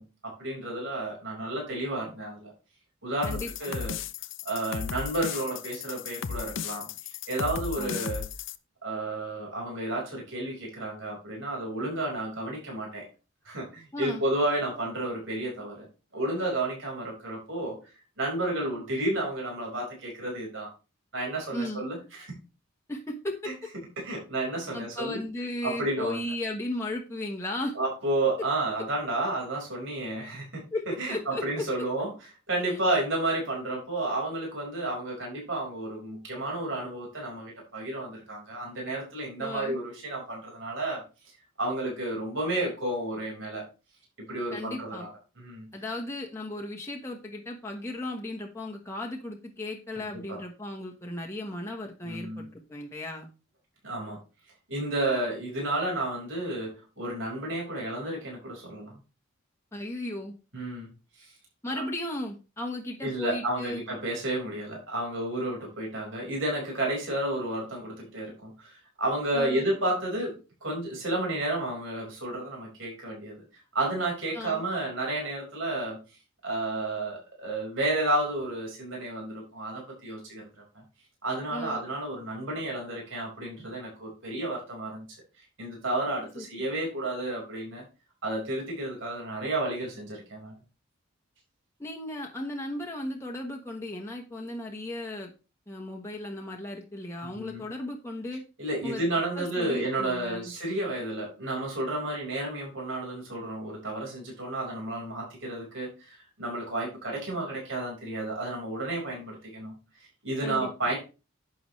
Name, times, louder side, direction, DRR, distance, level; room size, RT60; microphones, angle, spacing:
voice 1, 0.0-2.5 3.0-4.0 4.4-8.2 8.8-13.0 13.4-15.9 16.1-17.8 18.2-20.7 21.1-22.3 23.4-23.5 24.0-25.3 25.6-26.2 27.7-30.6 31.0-32.1 32.5-41.0 41.6-43.6 44.3-45.1 45.4-45.7 50.3-50.4 52.0-52.5 53.8-54.2 54.7-59.0 60.5-60.9 61.2-61.3 61.7-61.8 63.0-73.4 73.7-76.0 76.4-80.5 81.2-85.1 85.6-87.8 88.2-90.5 97.2-97.6 98.6-109.7 110.2-111.0, right 1 dB, 65° right, -2 dB, 4.9 m, -31 dB
sound 1, 3.2-8.6, left 7 dB, 60° left, 0.6 m, -35 dB
voice 2, 3.2-3.8 7.8-8.1 13.9-14.2 21.5-21.8 22.9-23.4 24.7-27.7 30.7-30.8 31.1-31.6 32.7-32.8 39.4-39.8 44.5-45.1 45.7-53.3 59.7-60.3 61.6-63.8 69.3-69.7 74.3-74.6 81.5-81.8 86.3-86.4 91.8-95.3 95.7-98.4 98.8-100.5 110.4-110.7, left 1 dB, 15° left, -1 dB, 1.3 m, -36 dB
11.0 x 7.9 x 3.2 m, 0.31 s
head